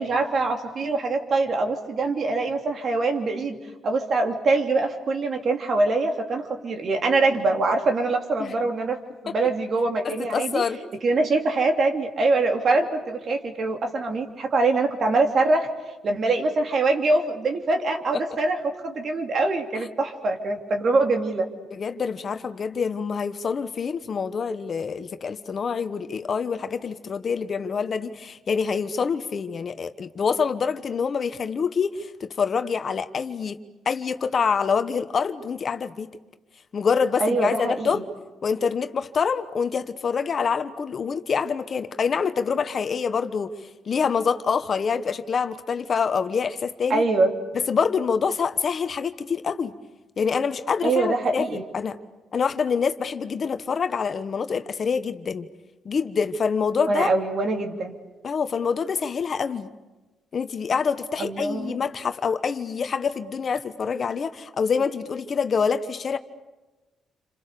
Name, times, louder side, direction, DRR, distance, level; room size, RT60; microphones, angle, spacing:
voice 1, 0.0-3.6 3.8-9.0 9.2-10.6 11.0-15.7 16.0-21.5 37.2-38.0 46.9-47.3 50.8-51.6 56.9-57.9 61.2-61.8, right 3 dB, 50° right, 4 dB, 3.1 m, -23 dB
voice 2, 10.0-10.8 21.7-33.6 33.8-36.2 36.7-38.0 38.4-43.5 43.8-47.0 47.7-49.7 50.2-51.5 51.7-52.0 52.3-55.5 55.8-57.1 58.2-59.7 60.3-66.2, left 6 dB, 45° left, 10 dB, 1.2 m, -26 dB
28.5 x 26.5 x 6.9 m, 1.1 s
cardioid pair, 90°, 0 cm